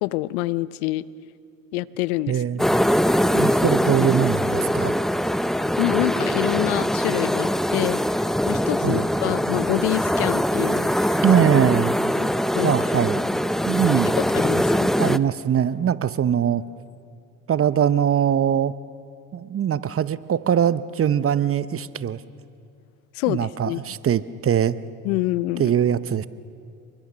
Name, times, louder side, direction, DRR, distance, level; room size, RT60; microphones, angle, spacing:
voice 1, 0.0-1.0 1.7-2.4 5.8-11.2 12.2-12.7 14.0-14.9 23.1-23.8 25.0-25.7, left 18 dB, 75° left, 19 dB, 0.8 m, -27 dB
voice 2, 2.3-2.6 3.3-5.0 8.8-9.1 11.2-11.9 12.6-13.2 13.7-14.2 15.0-16.6 17.5-18.7 19.3-22.2 23.3-24.8 25.6-26.3, right 9 dB, 30° right, 15 dB, 0.9 m, -22 dB
sound 1, 2.6-15.2, equal, ahead, 0.6 m, -22 dB
28.0 x 23.5 x 6.4 m, 2.6 s
hypercardioid pair, 75°, 43 cm